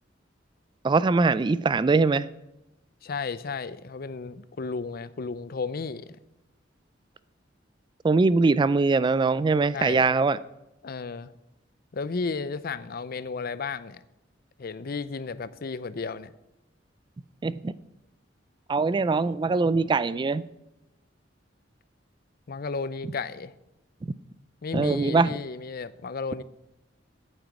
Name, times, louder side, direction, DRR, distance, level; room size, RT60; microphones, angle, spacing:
voice 1, 0.8-2.3 8.0-10.4 17.4-17.7 18.7-20.4 24.0-24.1 24.7-25.3, right 3 dB, 25° right, 0.3 m, -22 dB
voice 2, 3.0-6.2 9.7-10.1 10.8-11.3 11.9-14.0 14.6-16.3 22.5-23.5 24.6-26.4, left 4 dB, 50° left, 0.5 m, -33 dB
9.0 x 7.8 x 8.0 m
head